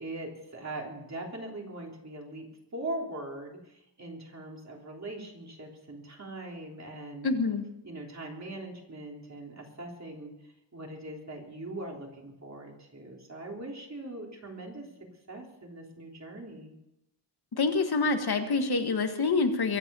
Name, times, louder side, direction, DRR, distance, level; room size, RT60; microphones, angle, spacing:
voice 1, 0.0-2.5 2.7-7.3 7.8-10.3 10.7-14.9 15.3-16.7, right 2 dB, 40° right, 0 dB, 3.3 m, -41 dB
voice 2, 7.2-7.6 17.5-19.8, left 4 dB, 60° left, 6 dB, 1.6 m, -26 dB
23.5 x 8.1 x 6.9 m, 0.86 s
wide cardioid pair, 155°, 43 cm